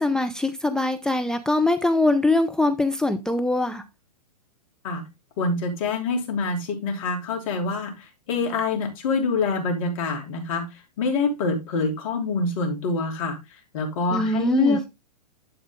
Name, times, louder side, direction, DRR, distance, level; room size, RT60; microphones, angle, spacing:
voice 1, 0.0-3.8 14.1-14.8, left 2 dB, 5° left, 0.6 m, -22 dB
voice 2, 5.4-10.7 11.0-13.4 13.7-14.9, left 3 dB, 55° left, 3.3 m, -25 dB
11.5 x 4.3 x 3.6 m
hypercardioid pair, 110°, 21 cm